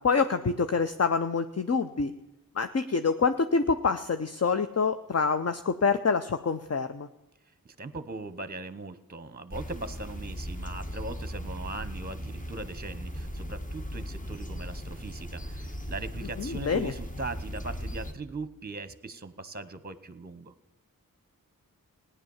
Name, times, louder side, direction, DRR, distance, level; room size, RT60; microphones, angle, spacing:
voice 1, 0.0-2.1 2.6-7.1 16.4-16.9, left 5 dB, 45° left, 9 dB, 0.7 m, -26 dB
voice 2, 7.8-20.5, right 3 dB, 25° right, 14 dB, 0.9 m, -40 dB
sound 1, 9.5-18.1, equal, 25° left, 1.2 m, -38 dB
17.0 x 10.0 x 7.1 m, 0.97 s
wide cardioid pair, 60°, 34 cm